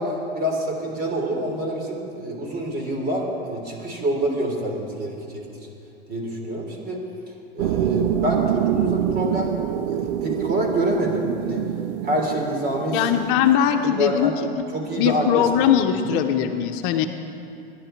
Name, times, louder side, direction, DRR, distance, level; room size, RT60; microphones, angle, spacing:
voice 1, 0.0-5.4 6.1-7.0 7.5-11.6 12.0-13.0 14.0-14.4 14.7-15.4 15.8-16.2, right 1 dB, 30° right, 1 dB, 3.6 m, -26 dB
sound 1, 7.6-13.3, right 11 dB, 60° right, 0.5 m, -26 dB
voice 2, 12.9-14.3 15.0-17.1, left 9 dB, 55° left, 6 dB, 1.0 m, -20 dB
22.0 x 10.5 x 4.6 m, 2.7 s
hypercardioid pair, 100°, 30 cm